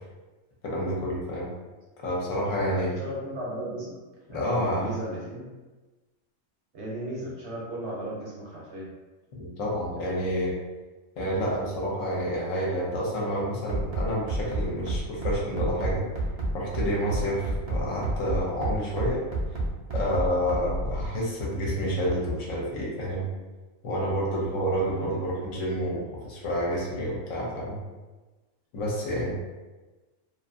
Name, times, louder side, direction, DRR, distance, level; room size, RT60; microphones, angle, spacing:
voice 1, 0.6-1.5 2.0-2.9 4.3-4.9 9.3-10.5 11.2-16.0 16.5-19.2 19.9-23.3 23.8-27.8 28.7-29.3, equal, 65° left, -4 dB, 1.0 m, -29 dB
voice 2, 2.4-5.5 6.7-8.9 24.9-25.2, right 1 dB, 60° right, -5 dB, 0.8 m, -36 dB
Bass drum, 13.7-21.1, right 2 dB, 75° right, 0.3 m, -29 dB
2.5 x 2.5 x 2.4 m, 1.2 s
omnidirectional pair, 1.5 m